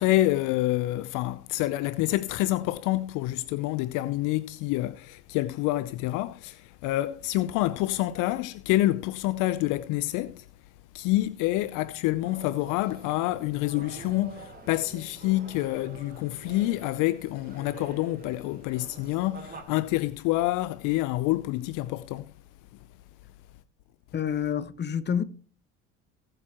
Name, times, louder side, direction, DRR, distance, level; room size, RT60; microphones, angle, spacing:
voice 1, 0.0-10.4 10.9-22.3, left 17 dB, 60° left, 0.7 m, -27 dB
sound 1, 12.2-19.6, right 3 dB, 25° right, 4.4 m, -47 dB
voice 2, 24.1-25.2, left 8 dB, 30° left, 1.1 m, -28 dB
18.5 x 8.0 x 3.0 m
hypercardioid pair, 65°, 36 cm